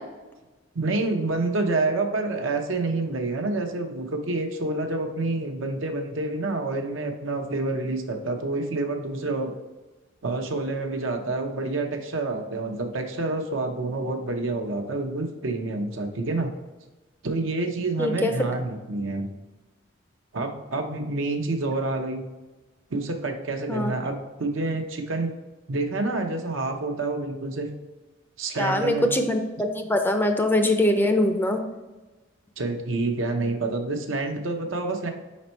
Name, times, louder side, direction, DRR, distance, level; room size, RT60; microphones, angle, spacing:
voice 1, 0.7-9.5 10.2-16.5 17.2-19.3 20.3-22.2 22.9-25.3 25.7-27.7 28.4-29.1 32.6-35.1, right 2 dB, 75° right, 4 dB, 0.8 m, -28 dB
voice 2, 18.0-18.3 23.7-23.9 28.6-31.6, left 1 dB, 10° left, 5 dB, 0.4 m, -22 dB
5.2 x 4.2 x 4.4 m, 1.2 s
head